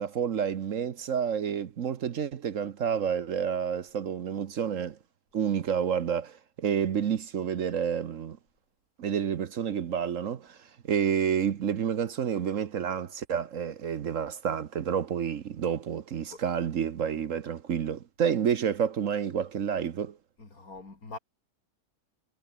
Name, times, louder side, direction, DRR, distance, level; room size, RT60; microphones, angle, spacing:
voice 1, 0.0-5.0 5.3-8.4 9.0-10.6 10.9-20.2, right 8 dB, 60° right, 1.2 m, -29 dB
voice 2, 20.4-21.2, left 3 dB, 65° left, 4.3 m, -43 dB
omnidirectional pair, 1.6 m